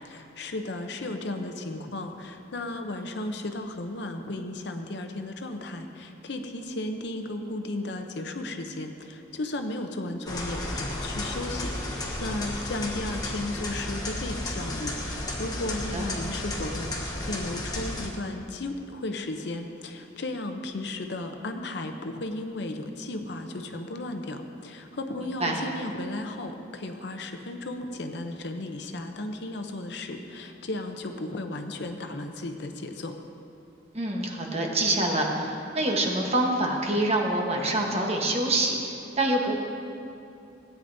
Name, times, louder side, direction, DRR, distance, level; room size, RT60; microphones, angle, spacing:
voice 1, 0.0-33.1, left 2 dB, 60° left, 6 dB, 0.7 m, -35 dB
sound 1, 10.3-18.1, left 1 dB, 20° left, 1.1 m, -33 dB
voice 2, 33.9-39.6, right 1 dB, 35° right, 0 dB, 1.1 m, -26 dB
16.5 x 9.1 x 2.7 m, 2.6 s
head